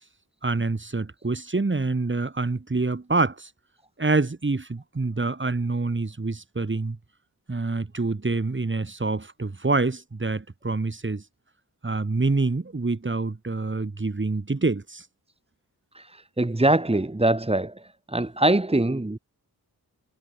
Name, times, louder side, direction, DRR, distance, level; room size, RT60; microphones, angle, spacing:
voice 1, 0.4-3.5 4.0-7.0 7.5-11.2 11.8-15.0, right 3 dB, 30° right, 3.5 m, -26 dB
voice 2, 15.9-17.7 18.1-19.2, right 1 dB, 15° right, 2.0 m, -23 dB
wide cardioid pair, 100°, 37 cm